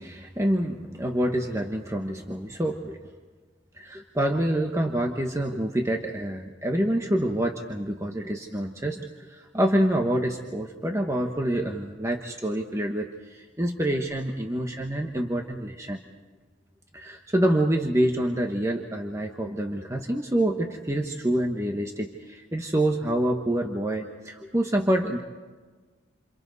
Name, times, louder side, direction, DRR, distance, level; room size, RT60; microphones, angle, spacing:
voice 1, 0.0-3.0 3.7-16.0 16.9-25.2, right 1 dB, 15° right, 2 dB, 1.2 m, -27 dB
28.5 x 28.0 x 4.1 m, 1.4 s
head